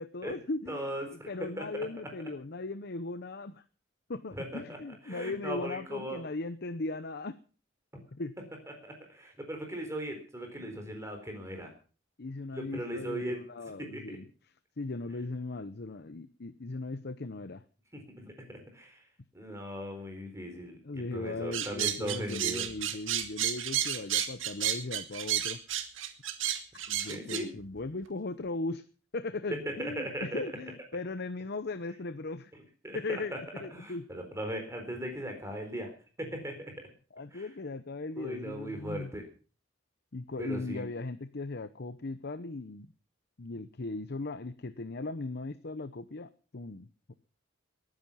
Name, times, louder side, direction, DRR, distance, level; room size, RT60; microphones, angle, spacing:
voice 1, 0.0-3.6 4.1-7.4 8.1-8.3 10.5-10.8 12.2-14.3 14.8-17.6 20.8-25.6 26.7-28.8 29.1-32.5 32.9-34.0 37.1-39.1 40.1-42.9 43.4-47.1, left 3 dB, 55° left, 12 dB, 0.8 m, -38 dB
voice 2, 0.7-1.8 4.3-4.8 5.1-6.2 8.8-11.7 12.5-14.2 17.9-19.0 19.3-22.6 27.1-27.5 29.5-30.4 32.8-33.4 33.7-35.9 36.2-36.8 37.3-37.5 38.2-39.2 40.4-40.8, equal, 15° right, 4 dB, 4.1 m, -38 dB
sound 1, 21.5-27.4, right 10 dB, 80° right, 2.0 m, -31 dB
21.0 x 10.0 x 5.7 m, 0.39 s
head